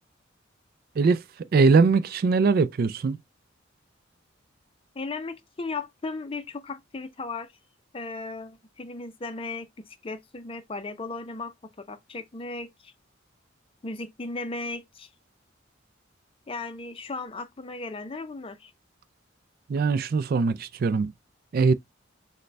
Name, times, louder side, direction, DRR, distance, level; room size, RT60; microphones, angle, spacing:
voice 1, 1.5-3.2 19.7-21.1 21.5-21.7, right 4 dB, 50° right, 0.3 m, -21 dB
voice 2, 4.9-7.5 7.9-12.9 13.8-15.1 16.5-18.7, left 3 dB, 30° left, 0.5 m, -36 dB
6.4 x 2.2 x 3.3 m
head